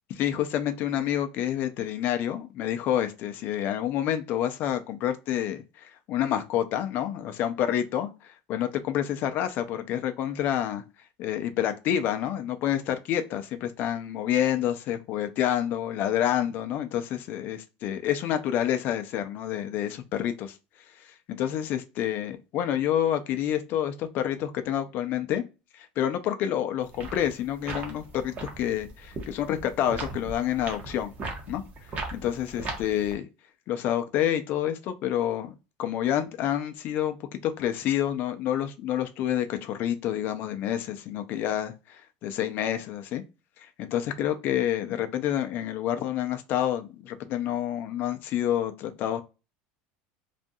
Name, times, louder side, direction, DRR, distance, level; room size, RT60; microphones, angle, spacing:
voice 1, 0.1-10.8 11.2-20.6 21.0-25.4 25.7-31.1 31.5-31.6 32.1-33.3 33.7-43.2 43.8-49.2, left 11 dB, 50° left, 0.5 m, -28 dB
sound 1, 26.8-33.1, right 3 dB, 30° right, 0.8 m, -38 dB
2.5 x 2.3 x 2.6 m
supercardioid pair, 140°, 4 cm